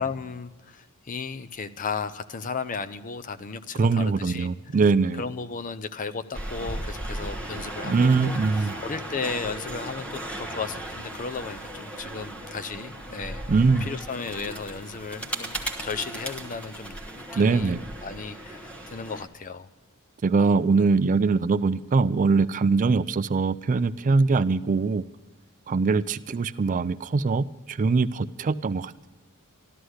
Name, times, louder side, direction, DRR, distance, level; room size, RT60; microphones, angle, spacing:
voice 1, 0.0-4.5 5.2-8.3 8.6-13.4 13.8-17.0 17.3-17.7 18.0-19.7, left 5 dB, 35° left, 11 dB, 0.6 m, -35 dB
voice 2, 3.8-5.2 7.8-8.8 13.5-13.9 17.4-17.8 20.2-25.0 25.7-29.1, right 4 dB, 35° right, 14 dB, 0.4 m, -22 dB
sound 1, 6.3-19.3, right 1 dB, 5° left, 1.1 m, -36 dB
13.0 x 12.5 x 6.4 m, 1.2 s
head